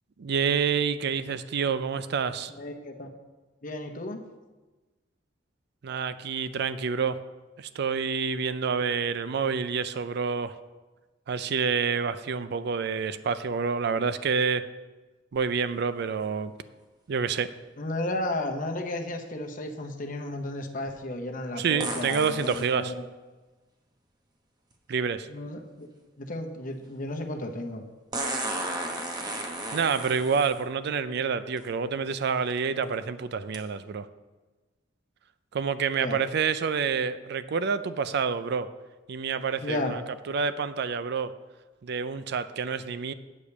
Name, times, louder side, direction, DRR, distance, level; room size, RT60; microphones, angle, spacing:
voice 1, 0.2-2.5 5.8-7.2 7.6-10.5 11.3-14.6 15.3-16.5 17.1-17.5 21.6-22.9 24.9-25.3 29.7-34.1 35.5-38.7 39.1-40.0 40.3-41.3 41.8-43.1, right 6 dB, 60° right, 13 dB, 0.4 m, -28 dB
voice 2, 2.5-3.1 3.6-4.2 17.8-23.1 25.3-25.9 26.2-27.8 36.0-36.2 39.6-39.9, left 1 dB, 45° left, 4 dB, 0.9 m, -33 dB
sound 1, 15.4-15.5 21.8-22.7 24.7-24.8 28.1-30.6 31.6-31.7 32.3-32.6 33.5-33.6, right 2 dB, 20° right, 1.0 m, -33 dB
8.4 x 5.0 x 6.9 m, 1.2 s
head